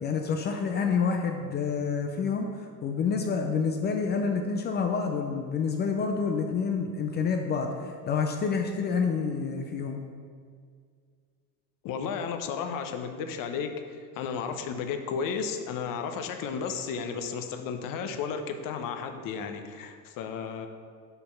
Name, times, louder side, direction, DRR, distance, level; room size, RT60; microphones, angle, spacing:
voice 1, 0.0-10.0, left 5 dB, 25° left, 4 dB, 0.3 m, -28 dB
voice 2, 11.8-20.7, left 6 dB, 45° left, 6 dB, 0.7 m, -33 dB
5.3 x 4.3 x 5.6 m, 2.1 s
supercardioid pair, 100°, 48 cm